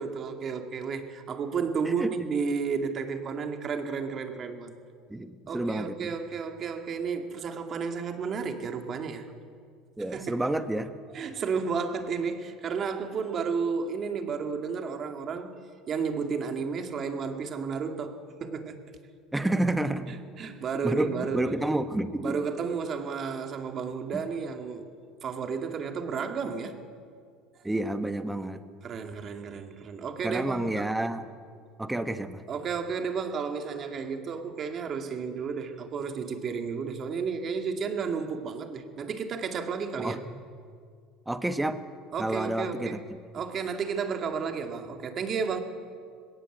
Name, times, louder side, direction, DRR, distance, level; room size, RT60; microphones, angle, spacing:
voice 1, 0.0-4.8 5.5-9.3 10.1-10.4 11.1-15.5 15.9-18.8 20.1-21.5 22.2-24.9 25.2-26.8 28.8-30.9 32.5-40.2 42.1-43.0 43.3-45.6, right 5 dB, 40° right, 5 dB, 2.3 m, -32 dB
voice 2, 5.1-6.1 10.0-10.9 19.3-20.1 20.8-22.3 24.1-24.2 27.6-28.6 30.2-31.3 31.8-32.4 40.0-40.2 41.3-41.8 42.2-43.0, right 1 dB, 10° right, 9 dB, 1.3 m, -29 dB
20.0 x 17.5 x 8.1 m, 2.1 s
supercardioid pair, 100°, 0 cm